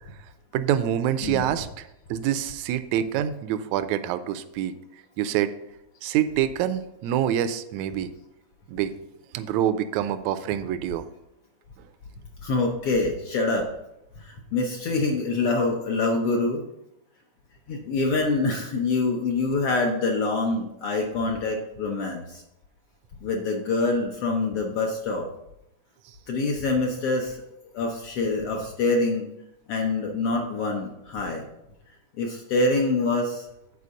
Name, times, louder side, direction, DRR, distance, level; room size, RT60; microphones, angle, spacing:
voice 1, 0.5-4.7 5.2-5.5 6.0-8.1 8.7-8.9 9.3-11.0, right 10 dB, 80° right, 11 dB, 1.8 m, -26 dB
voice 2, 1.2-1.6 12.4-13.7 14.2-16.6 17.7-22.4 23.2-25.3 26.3-27.4 27.7-29.3 29.7-31.5 32.2-33.5, left 3 dB, 65° left, 1 dB, 1.5 m, -25 dB
8.3 x 4.6 x 6.2 m, 0.85 s
omnidirectional pair, 3.4 m